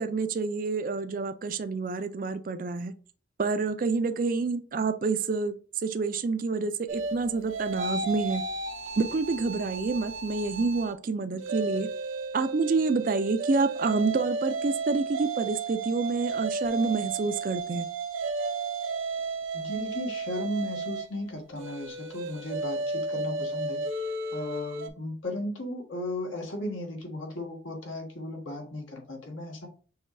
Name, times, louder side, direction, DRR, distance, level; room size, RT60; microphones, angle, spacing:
voice 1, 0.0-2.9 3.4-8.4 9.0-11.9 12.3-17.9, right 4 dB, 45° right, 10 dB, 0.4 m, -28 dB
sound 1, 6.9-10.9 11.3-24.9, right 3 dB, 85° right, 0.7 m, -33 dB
voice 2, 19.5-29.7, left 1 dB, 80° left, 1 dB, 1.5 m, -36 dB
6.4 x 3.1 x 2.6 m, 0.40 s
head